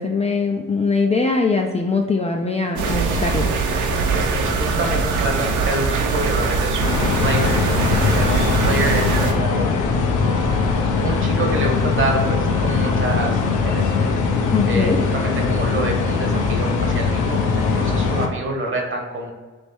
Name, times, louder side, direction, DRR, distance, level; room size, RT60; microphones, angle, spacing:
voice 1, 0.0-3.5 14.5-15.0, left 4 dB, 20° left, 2 dB, 0.3 m, -21 dB
sound 1, 2.8-9.3, right 4 dB, 75° right, 0.7 m, -22 dB
voice 2, 3.9-9.7 11.0-13.9 14.2-19.3, right 2 dB, 40° right, 1 dB, 1.1 m, -27 dB
sound 2, 6.8-18.3, left 4 dB, 80° left, 0.7 m, -20 dB
3.2 x 3.1 x 4.4 m, 1.3 s
cardioid pair, 90°, 30 cm